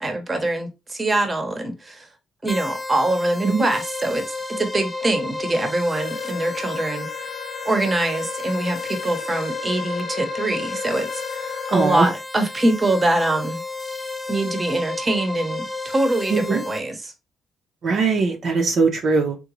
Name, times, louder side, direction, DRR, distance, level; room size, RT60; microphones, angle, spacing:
voice 1, 0.0-2.1 2.4-4.2 4.6-7.3 7.6-13.6 14.3-17.1, right 2 dB, 25° right, 0.8 m, -24 dB
sound 1, 2.5-16.8, left 3 dB, 15° left, 0.4 m, -32 dB
Wind instrument woodwind instrument, 5.9-12.0, left 8 dB, 85° left, 0.5 m, -35 dB
voice 2, 11.7-12.1 16.3-16.6 17.8-19.4, right 4 dB, 60° right, 0.6 m, -20 dB
3.8 x 2.2 x 2.9 m
cardioid pair, 90°, 0 cm